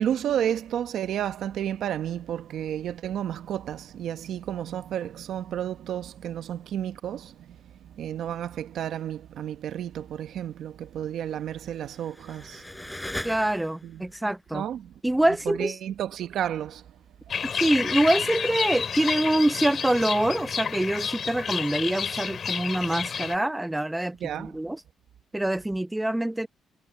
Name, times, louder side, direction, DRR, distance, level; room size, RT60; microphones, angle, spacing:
voice 1, 0.0-12.6 13.8-14.0 14.5-14.9 15.5-17.0 17.3-17.5 24.2-24.6, right 10 dB, 70° right, 1.1 m, -32 dB
sound 1, 11.6-14.0, left 1 dB, 10° left, 7.6 m, -39 dB
voice 2, 13.2-14.7 15.0-15.8 17.4-24.8 25.3-26.5, right 1 dB, 10° right, 0.8 m, -25 dB
sound 2, 17.3-23.4, left 7 dB, 50° left, 3.6 m, -30 dB
cardioid pair, 90°, 0 cm